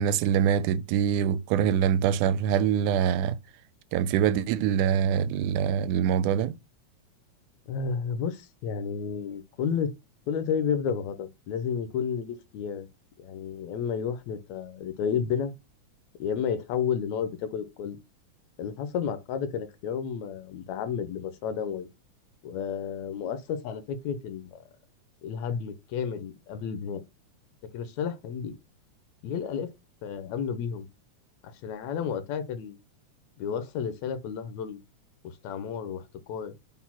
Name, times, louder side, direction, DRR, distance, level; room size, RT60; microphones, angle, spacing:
voice 1, 0.0-3.4 3.9-6.6, right 8 dB, 90° right, 2.0 m, -24 dB
voice 2, 7.7-9.9 10.3-12.9 13.2-15.5 16.2-18.0 18.6-21.9 22.4-24.6 25.2-27.0 27.7-28.6 29.2-29.7 30.0-30.9 31.4-32.8 33.4-34.8 35.2-36.6, left 7 dB, 75° left, 1.9 m, -31 dB
4.7 x 4.1 x 5.7 m
omnidirectional pair, 3.5 m